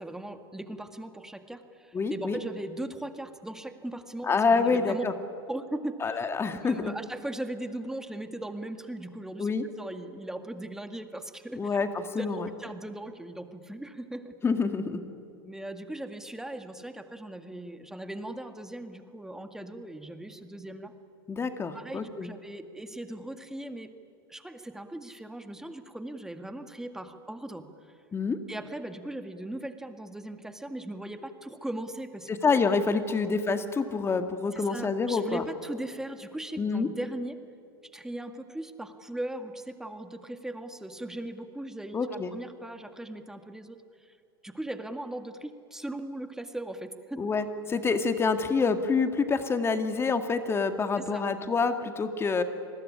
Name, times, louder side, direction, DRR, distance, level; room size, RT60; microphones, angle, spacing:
voice 1, 0.0-5.0 5.5-9.5 9.8-11.8 12.2-14.3 15.5-20.9 21.7-23.9 24.3-27.9 28.5-32.3 34.5-37.4 37.9-44.2 44.4-47.2 51.0-51.2, right 1 dB, 5° right, 7 dB, 1.9 m, -39 dB
voice 2, 1.9-2.4 4.3-5.1 6.0-6.9 9.4-9.6 11.6-12.5 14.4-15.0 21.3-22.3 28.1-28.4 32.3-35.4 36.6-36.9 41.9-42.3 47.2-52.4, left 4 dB, 20° left, 8 dB, 2.0 m, -27 dB
28.5 x 20.5 x 9.9 m, 2.5 s
hypercardioid pair, 100°, 12 cm